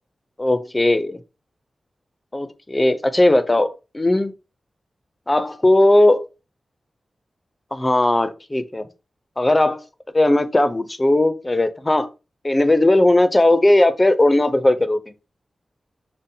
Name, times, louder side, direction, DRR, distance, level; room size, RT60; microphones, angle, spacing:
voice 1, 0.4-1.2 2.3-4.3 5.3-6.2 7.7-8.9 9.4-9.8 10.1-12.1 12.4-15.1, left 1 dB, 20° left, 0.4 m, -17 dB
5.2 x 2.0 x 2.7 m
wide cardioid pair, 145°, 0 cm